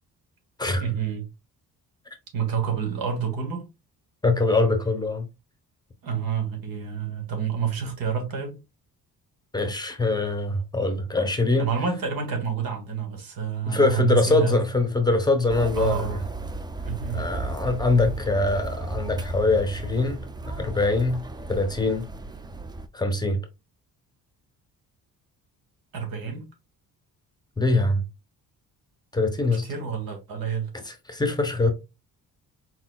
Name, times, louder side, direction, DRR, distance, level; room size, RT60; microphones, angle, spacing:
voice 1, 0.8-1.3 2.3-3.7 6.0-8.6 11.6-14.6 15.7-16.2 16.8-17.3 25.9-26.4 29.5-30.7, right 7 dB, 90° right, 1.7 m, -28 dB
voice 2, 4.2-5.3 9.5-11.7 13.7-16.2 17.1-21.2 21.5-22.1 22.9-23.4 27.6-28.0 29.1-29.6 30.9-31.7, left 3 dB, 10° left, 0.7 m, -23 dB
sound 1, 15.5-22.9, right 2 dB, 15° right, 0.3 m, -34 dB
4.3 x 4.2 x 2.2 m
cardioid pair, 135°, 34 cm